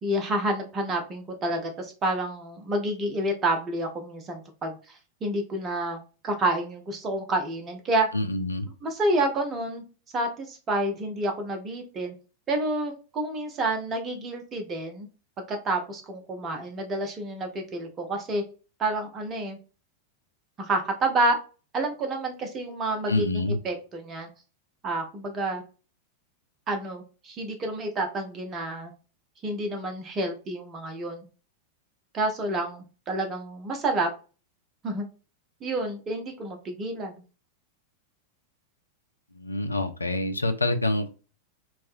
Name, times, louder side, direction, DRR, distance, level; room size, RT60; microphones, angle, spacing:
voice 1, 0.0-8.1 8.8-9.8 10.1-12.1 12.5-15.1 15.5-18.4 18.8-19.6 20.6-21.4 21.7-24.3 24.8-25.6 26.7-28.9 29.4-31.2 32.1-34.1 34.8-35.0 35.6-37.2, right 2 dB, 25° right, 3 dB, 0.7 m, -29 dB
voice 2, 8.1-8.7 23.1-23.6 39.3-41.1, left 2 dB, 80° left, 7 dB, 0.3 m, -26 dB
3.3 x 2.2 x 2.5 m, 0.35 s
figure-of-eight pair, 90°, 0 cm